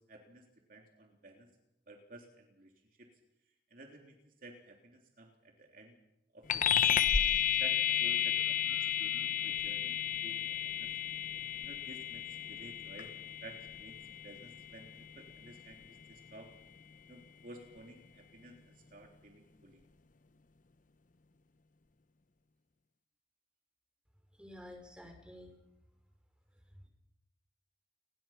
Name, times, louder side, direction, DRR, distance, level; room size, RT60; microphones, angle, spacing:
voice 1, 0.1-0.4 0.7-1.5 1.9-2.7 3.0-3.1 3.7-4.2 4.4-6.0 6.3-7.1 7.6-10.9 11.6-12.2 12.5-13.1 13.4-14.0 14.2-14.9 15.1-16.5 17.1-19.8, right 2 dB, 50° right, 2 dB, 3.4 m, -53 dB
sound 1, 6.5-16.3, left 9 dB, 50° left, 0.9 m, -33 dB
voice 2, 24.4-25.6, left 1 dB, 5° right, 3 dB, 5.7 m, -50 dB
29.5 x 21.0 x 5.9 m, 0.85 s
head